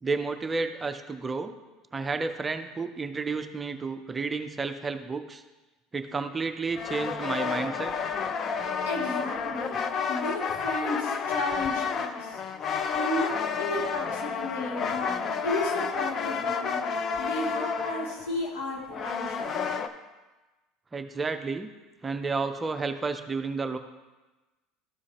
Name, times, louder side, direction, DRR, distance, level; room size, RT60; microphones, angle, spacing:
voice 1, 0.0-1.5 1.9-5.4 5.9-7.9 20.9-21.7 22.0-23.8, right 4 dB, 20° right, 8 dB, 0.5 m, -31 dB
sound 1, 6.7-19.9, left 6 dB, 35° left, 0.5 m, -30 dB
voice 2, 8.8-9.8 10.1-12.4 12.9-16.8 17.2-19.6, left 1 dB, 85° left, -3 dB, 2.4 m, -33 dB
12.5 x 4.9 x 2.9 m, 1.2 s
supercardioid pair, 125°, 0 cm